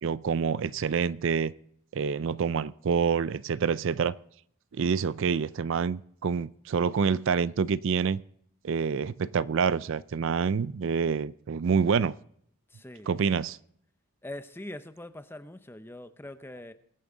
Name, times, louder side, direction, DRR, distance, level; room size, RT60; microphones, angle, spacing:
voice 1, 0.0-1.5 1.9-4.1 4.7-8.2 8.6-12.1 13.1-13.6, right 6 dB, 60° right, 18 dB, 0.4 m, -27 dB
voice 2, 12.7-13.4 14.2-16.7, left 1 dB, 10° left, 10 dB, 0.7 m, -43 dB
22.5 x 9.0 x 3.9 m, 0.66 s
head